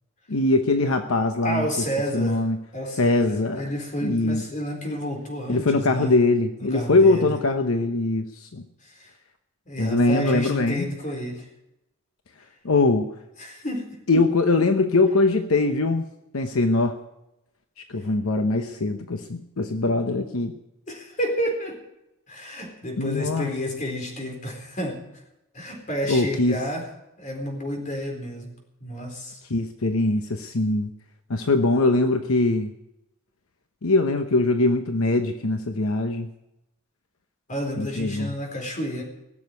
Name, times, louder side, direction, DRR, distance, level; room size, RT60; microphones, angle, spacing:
voice 1, 0.3-1.7 2.1-2.6 3.0-3.6 4.0-4.4 5.5-8.6 9.8-10.9 12.6-13.1 14.1-16.1 16.3-17.0 17.9-20.5 23.0-23.5 26.1-26.6 29.5-30.9 31.3-32.7 33.8-36.3 37.8-38.3, left 2 dB, 80° left, 7 dB, 1.0 m, -22 dB
voice 2, 1.4-2.4 2.7-6.1 6.6-7.4 8.8-9.1 9.7-11.5 13.4-14.0 18.9-19.0 20.9-21.8 22.3-25.0 25.5-26.9 27.2-28.5 28.8-29.4 37.5-39.0, equal, 35° left, 2 dB, 4.1 m, -30 dB
18.5 x 7.4 x 9.6 m, 0.89 s
head